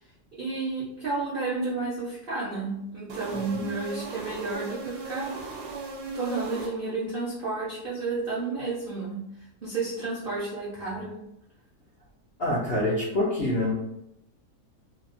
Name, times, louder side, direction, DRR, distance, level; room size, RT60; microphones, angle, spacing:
voice 1, 0.4-5.3 6.1-9.2 9.6-11.2, right 3 dB, 65° right, -7 dB, 0.5 m, -31 dB
sound 1, 3.1-7.2, right 3 dB, 85° right, 1.2 m, -38 dB
voice 2, 12.4-13.7, left 1 dB, 65° left, -8 dB, 0.6 m, -26 dB
2.8 x 2.1 x 2.5 m, 0.81 s
omnidirectional pair, 1.7 m